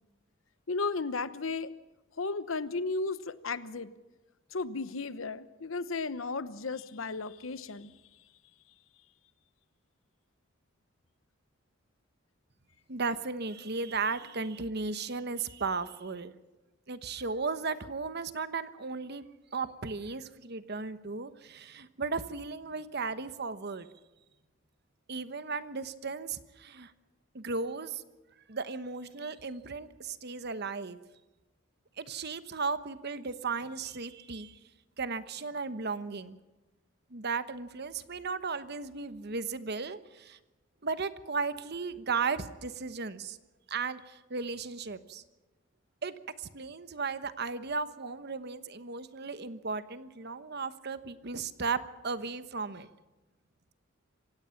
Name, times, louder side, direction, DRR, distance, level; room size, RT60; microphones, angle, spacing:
voice 1, 0.7-1.7 2.2-3.9 4.5-7.9, left 3 dB, 80° left, 15 dB, 1.0 m, -34 dB
voice 2, 12.9-16.4 16.9-19.2 19.5-23.9 25.1-26.9 27.3-28.0 28.5-31.0 32.0-34.6 35.0-36.4 37.1-40.4 40.8-43.4 43.7-45.2 46.0-52.9, right 4 dB, 55° right, 13 dB, 1.1 m, -35 dB
26.0 x 17.0 x 5.9 m, 1.1 s
head